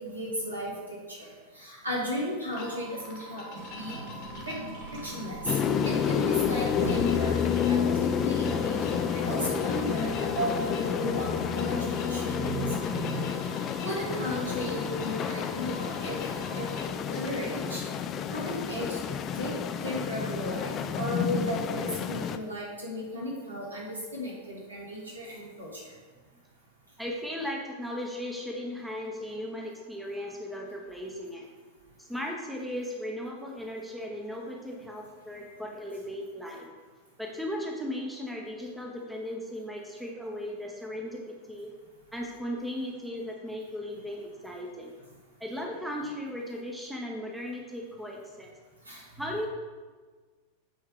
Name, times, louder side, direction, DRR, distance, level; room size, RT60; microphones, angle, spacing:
voice 1, 0.0-4.0 4.5-4.6 4.9-13.3 13.8-16.2 16.5-16.7 17.1-17.8 18.3-19.0 19.3-25.8 48.9-49.1, equal, 80° right, -4 dB, 2.2 m, -35 dB
sound 1, 2.5-16.9, right 1 dB, 45° left, 1.4 m, -44 dB
sound 2, 3.5-8.9, right 1 dB, 50° right, 2.0 m, -41 dB
sound 3, 5.5-22.4, left 7 dB, 30° left, 0.4 m, -30 dB
voice 2, 27.0-31.5 32.0-36.7 37.2-41.7 42.1-44.9 45.4-48.5 49.2-49.5, left 1 dB, 5° right, 0 dB, 1.0 m, -37 dB
8.9 x 3.5 x 5.0 m, 1.4 s
figure-of-eight pair, 90°, 0 cm